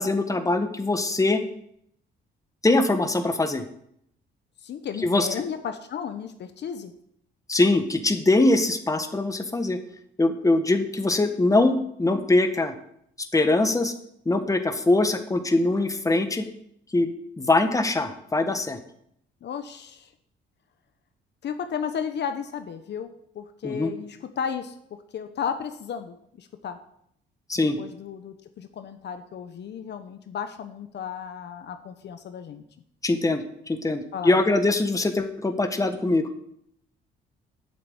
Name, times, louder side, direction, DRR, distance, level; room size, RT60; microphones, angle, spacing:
voice 1, 0.0-1.4 2.6-3.6 5.0-5.3 7.5-9.8 10.2-12.7 13.3-13.9 14.2-16.5 16.9-17.1 17.4-18.8 23.6-23.9 27.5-27.8 33.0-36.3, left 2 dB, 15° left, 7 dB, 1.4 m, -22 dB
voice 2, 4.6-6.9 19.4-20.1 21.4-24.7 25.1-26.8 27.6-32.6 34.1-34.4, left 7 dB, 60° left, 8 dB, 1.0 m, -34 dB
8.9 x 7.1 x 8.1 m, 0.71 s
cardioid pair, 90°, 20 cm